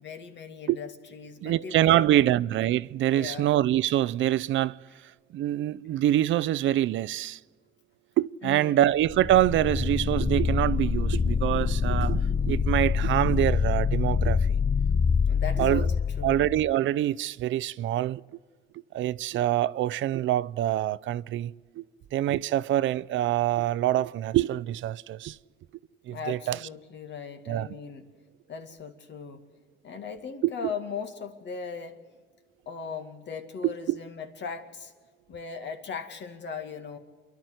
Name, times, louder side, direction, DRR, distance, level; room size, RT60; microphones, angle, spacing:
voice 1, 0.0-2.4 3.1-3.5 8.4-8.8 15.3-16.4 26.1-28.1 28.5-29.5 29.8-32.0 32.7-34.9 35.3-37.0, left 5 dB, 65° left, 2.2 m, -38 dB
voice 2, 1.4-4.8 5.3-7.4 8.2-14.6 15.6-15.9 16.2-18.2 18.9-21.8 22.1-25.4 26.1-26.6 27.5-27.7 30.4-30.5 33.6-34.0, right 13 dB, 75° right, 0.5 m, -25 dB
sound 1, 9.0-16.7, left 5 dB, 20° left, 0.6 m, -25 dB
29.0 x 11.5 x 7.9 m
cardioid pair, 90°, 20 cm